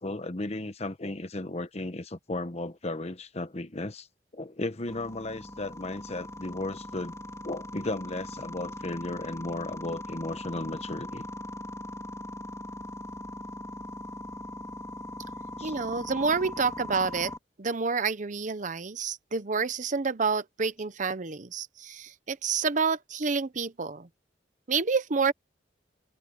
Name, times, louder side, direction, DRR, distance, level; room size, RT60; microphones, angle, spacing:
voice 1, 0.0-4.1 4.3-7.1 7.4-11.3 15.6-15.7, left 2 dB, 40° left, 1.2 m, -35 dB
sound 1, 4.9-17.4, left 1 dB, 20° left, 3.9 m, -40 dB
voice 2, 15.6-17.3 17.6-24.1 24.7-25.3, right 5 dB, 45° right, 0.8 m, -28 dB
open air
head